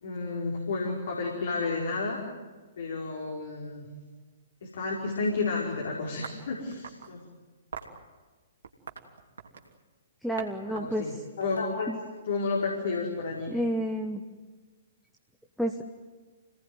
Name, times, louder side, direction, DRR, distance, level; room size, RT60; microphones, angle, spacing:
voice 1, 0.0-2.2 2.8-3.9 4.6-7.2 10.7-11.9 12.3-13.5, left 3 dB, 55° left, -2 dB, 5.0 m, -31 dB
sound 1, 6.2-7.1 7.7-8.0 8.6-9.8 10.4-10.5 10.8-12.2, right 6 dB, 60° right, 2.9 m, -43 dB
voice 2, 10.2-11.2 11.9-12.0 13.5-14.2 15.6-15.8, equal, ahead, 2 dB, 1.2 m, -30 dB
27.0 x 18.5 x 9.6 m, 1.3 s
figure-of-eight pair, 115°, 0 cm